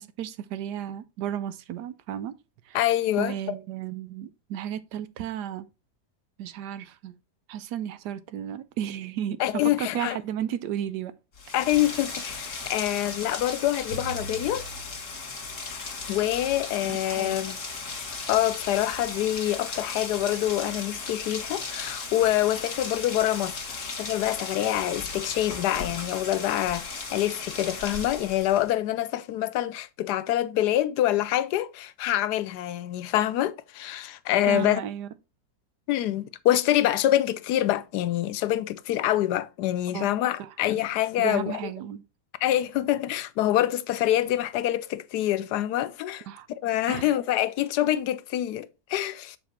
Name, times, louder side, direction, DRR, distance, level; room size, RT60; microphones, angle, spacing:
voice 1, 0.0-2.4 2.7-2.8 3.2-5.7 6.4-7.2 7.5-11.2 11.7-11.8 16.9-17.4 34.5-35.1 39.9-40.1 40.4-40.5 41.2-42.0 46.3-46.5 46.9-47.0, right 10 dB, 85° right, 1.2 m, -33 dB
voice 2, 2.7-3.5 9.4-10.2 11.5-14.6 16.1-17.6 18.1-34.8 35.9-41.7 42.4-46.2 46.6-49.4, left 13 dB, 85° left, 1.2 m, -26 dB
Rain, 11.3-28.7, left 4 dB, 50° left, 1.8 m, -36 dB
Bowed string instrument, 13.9-20.0, right 4 dB, 15° right, 1.9 m, -46 dB
7.1 x 4.3 x 4.3 m
omnidirectional pair, 1.7 m